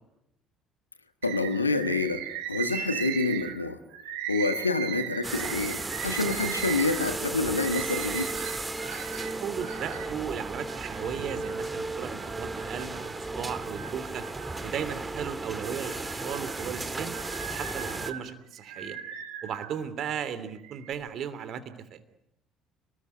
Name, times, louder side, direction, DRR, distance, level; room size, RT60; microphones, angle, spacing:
voice 1, 1.2-2.2 2.5-3.8 4.3-8.3, left 3 dB, 85° left, 10 dB, 1.6 m, -27 dB
Bird, 1.2-10.1 10.7-11.7 12.2-13.2 13.6-15.0 15.5-19.8 20.5-20.9, right 11 dB, 65° right, 4.0 m, -38 dB
sound 1, 5.2-18.1, right 2 dB, 15° right, 2.2 m, -35 dB
voice 2, 9.4-14.2 14.6-17.1 17.4-19.0 19.4-22.0, right 8 dB, 50° right, 12 dB, 3.0 m, -36 dB
30.0 x 20.5 x 9.7 m, 0.84 s
figure-of-eight pair, 55°, 0 cm